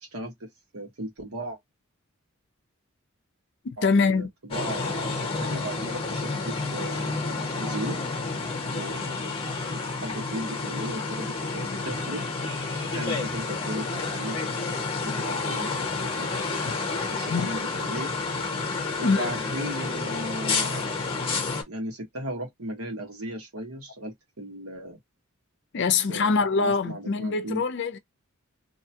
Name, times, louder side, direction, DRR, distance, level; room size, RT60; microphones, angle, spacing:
voice 1, 0.0-1.6 3.8-7.1 7.6-8.2 8.6-9.4 9.6-12.2 12.9-16.3 16.8-18.2 18.9-21.1 21.6-25.0 26.1-27.6, right 1 dB, 90° right, 1.3 m, -37 dB
voice 2, 3.6-4.3 16.6-16.7 17.3-17.5 19.0-19.3 25.7-28.0, left 4 dB, 55° left, 0.5 m, -24 dB
sound 1, 4.5-21.6, left 3 dB, 25° left, 0.8 m, -30 dB
2.8 x 2.1 x 2.8 m
head